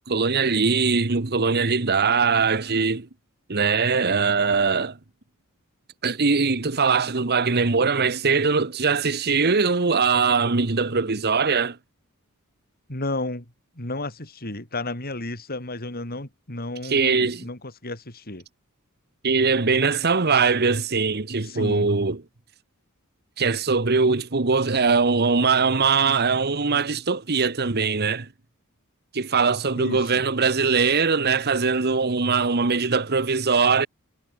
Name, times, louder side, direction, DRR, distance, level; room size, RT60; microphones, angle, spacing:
voice 1, 0.1-3.1 3.5-5.0 6.0-11.8 16.8-17.5 19.2-22.2 23.4-28.3 29.1-33.9, right 4 dB, 45° right, 1.2 m, -21 dB
voice 2, 12.9-13.5 13.8-18.4 21.4-21.9 29.8-30.2, left 2 dB, 45° left, 4.4 m, -32 dB
head